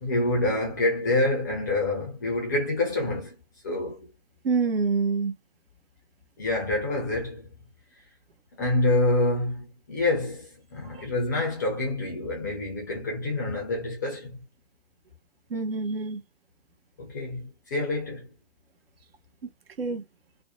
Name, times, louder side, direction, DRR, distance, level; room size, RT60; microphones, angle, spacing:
voice 1, 0.0-3.3 3.6-4.1 6.4-7.5 8.5-14.4 17.0-18.3, left 2 dB, 15° left, 0.4 m, -27 dB
voice 2, 4.4-5.3 10.9-11.0 15.5-16.2 19.8-20.0, right 4 dB, 50° right, 0.6 m, -26 dB
2.6 x 2.0 x 2.6 m
figure-of-eight pair, 120°, 37 cm